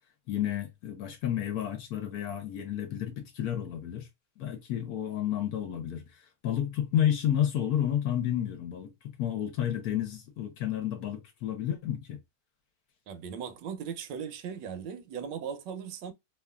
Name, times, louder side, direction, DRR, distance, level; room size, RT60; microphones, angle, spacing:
voice 1, 0.3-4.1 4.4-8.9 9.2-12.2, left 10 dB, 70° left, 1.0 m, -31 dB
voice 2, 13.1-16.1, right 7 dB, 80° right, 1.3 m, -38 dB
3.0 x 2.3 x 2.2 m
omnidirectional pair, 1.9 m